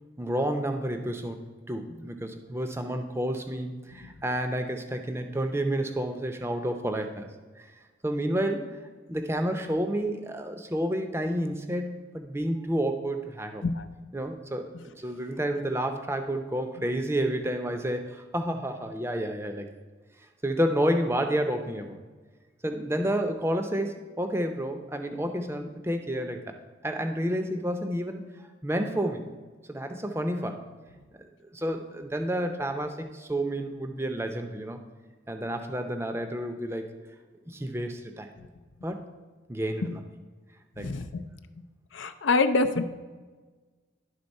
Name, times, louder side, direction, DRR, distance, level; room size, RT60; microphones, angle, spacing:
voice 1, 0.2-1.4 1.7-7.3 7.6-8.8 9.1-13.6 14.1-19.7 20.4-22.0 22.6-26.6 26.8-29.3 29.7-30.6 31.1-34.8 35.3-36.9 37.5-38.3 38.8-39.0 39.5-40.0 40.8-41.0, right 1 dB, 15° right, 6 dB, 0.5 m, -30 dB
voice 2, 40.8-41.2 41.9-42.8, left 3 dB, 85° left, 9 dB, 0.5 m, -25 dB
11.5 x 3.8 x 5.3 m, 1.4 s
head